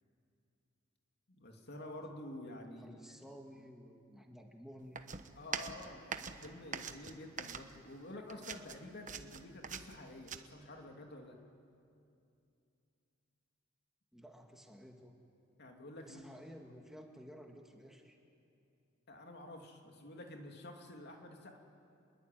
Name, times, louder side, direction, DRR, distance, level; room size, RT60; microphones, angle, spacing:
voice 1, 1.3-3.0 5.4-11.4 15.6-16.3 19.1-21.6, left 1 dB, 55° left, 2 dB, 2.8 m, -49 dB
voice 2, 2.8-5.0 14.1-15.1 16.0-18.2, equal, ahead, 2 dB, 1.8 m, -54 dB
sound 1, 5.0-8.0 8.3-10.4, right 6 dB, 40° right, 1.1 m, -43 dB
28.0 x 21.5 x 9.3 m, 2.6 s
head